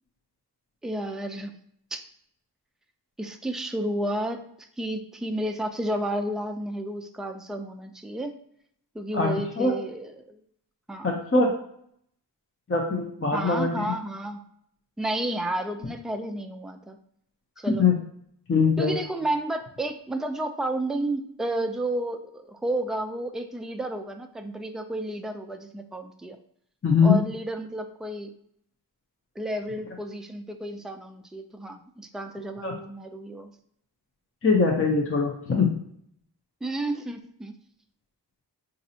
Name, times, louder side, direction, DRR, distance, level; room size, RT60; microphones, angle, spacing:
voice 1, 0.8-1.5 1.9-2.0 3.2-8.3 8.9-10.4 10.9-11.2 13.3-14.4 15.0-17.0 17.6-17.8 18.8-26.4 27.0-28.3 29.4-33.5 36.6-37.5, right 1 dB, ahead, 6 dB, 0.3 m, -31 dB
voice 2, 9.1-9.7 11.0-11.5 12.7-13.9 17.8-18.0 18.5-18.9 26.8-27.2 32.6-32.7 34.4-35.8, left 4 dB, 30° left, 0 dB, 0.6 m, -22 dB
4.1 x 2.6 x 2.7 m, 0.68 s
wide cardioid pair, 50°, 41 cm